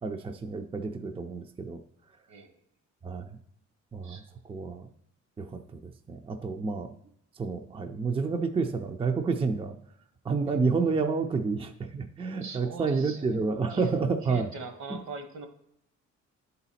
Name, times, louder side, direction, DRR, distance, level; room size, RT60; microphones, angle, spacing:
voice 1, 0.0-1.8 3.0-3.4 3.9-4.9 5.4-6.9 7.4-9.8 10.2-14.5 14.9-15.0, right 4 dB, 20° right, 6 dB, 0.5 m, -30 dB
voice 2, 12.4-13.3 13.7-13.9 14.2-15.5, right 4 dB, 70° right, 7 dB, 1.3 m, -41 dB
9.6 x 4.0 x 4.2 m, 0.71 s
cardioid pair, 90°, 30 cm